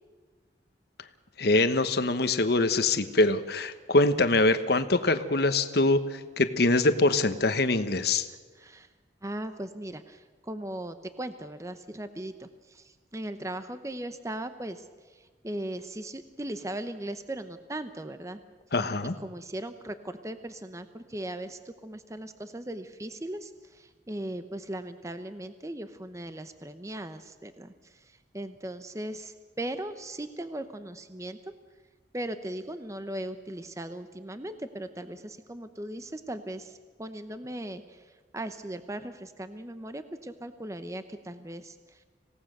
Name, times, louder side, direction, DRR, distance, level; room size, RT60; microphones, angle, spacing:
voice 1, 1.4-8.3 18.7-19.1, left 2 dB, 60° left, 10 dB, 1.2 m, -24 dB
voice 2, 8.5-8.9 9.2-18.4 19.2-31.5 32.1-42.0, right 1 dB, 15° right, 10 dB, 0.8 m, -38 dB
27.0 x 17.5 x 6.7 m, 1.4 s
head